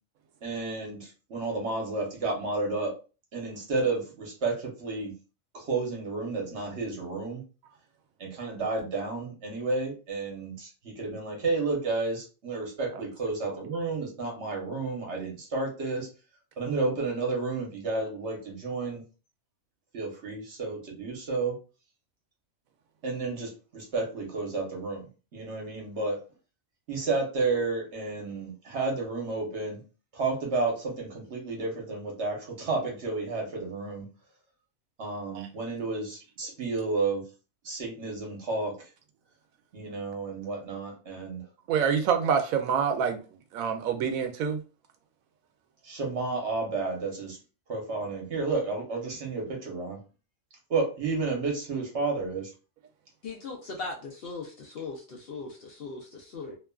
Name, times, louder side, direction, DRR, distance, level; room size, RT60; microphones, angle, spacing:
voice 1, 0.4-2.9 3.3-5.1 5.5-7.4 8.2-16.1 16.6-19.0 19.9-21.6 23.0-25.1 25.3-26.2 26.9-29.8 30.1-34.0 35.0-37.2 37.6-38.7 39.7-41.5 45.8-47.4 47.7-50.0 50.7-52.5, right 3 dB, 55° right, 1.2 m, -31 dB
voice 2, 41.7-43.2 43.5-44.6, right 7 dB, 85° right, 1.0 m, -26 dB
voice 3, 53.2-56.6, left 3 dB, 60° left, 0.6 m, -39 dB
2.9 x 2.3 x 2.2 m
omnidirectional pair, 1.4 m